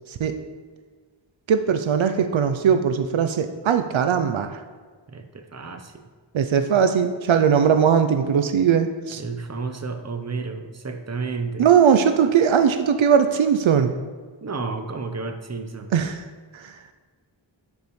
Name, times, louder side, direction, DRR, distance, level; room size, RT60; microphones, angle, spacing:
voice 1, 0.1-0.4 1.5-4.6 6.3-9.2 11.6-13.9 15.9-16.3 16.5-16.8, right 7 dB, 80° right, 8 dB, 0.5 m, -19 dB
voice 2, 5.1-6.0 9.2-11.7 14.4-15.9, right 4 dB, 35° right, 6 dB, 0.8 m, -31 dB
11.0 x 5.4 x 3.1 m, 1.5 s
wide cardioid pair, 60°, 46 cm